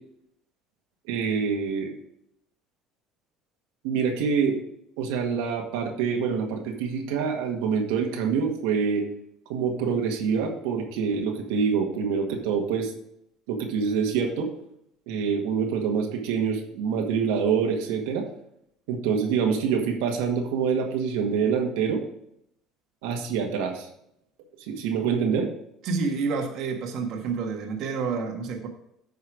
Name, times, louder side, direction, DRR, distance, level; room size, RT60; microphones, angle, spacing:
voice 1, 1.1-1.9 3.8-4.6 5.0-9.0 9.5-12.9 13.5-14.5 15.1-18.2 18.9-22.0 23.0-23.9 24.7-25.5, right 6 dB, 90° right, 2 dB, 1.8 m, -26 dB
voice 2, 25.8-28.7, right 4 dB, 55° right, 2 dB, 1.5 m, -29 dB
9.5 x 5.5 x 4.8 m, 0.74 s
cardioid pair, 130°, 0 cm